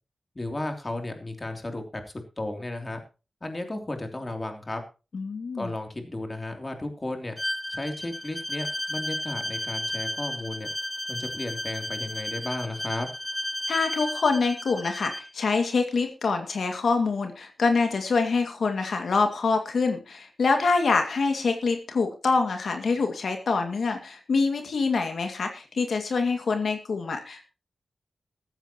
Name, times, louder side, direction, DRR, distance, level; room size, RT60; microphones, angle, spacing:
voice 1, 0.3-3.0 3.4-4.8 5.5-7.4 7.7-10.7 11.1-13.1, left 2 dB, 25° left, 4 dB, 3.0 m, -34 dB
voice 2, 5.1-5.7 13.7-27.5, left 4 dB, 75° left, 5 dB, 2.1 m, -25 dB
Bowed string instrument, 7.4-15.3, equal, 10° left, 0.9 m, -33 dB
15.0 x 14.5 x 3.0 m, 0.32 s
wide cardioid pair, 105°, 0 cm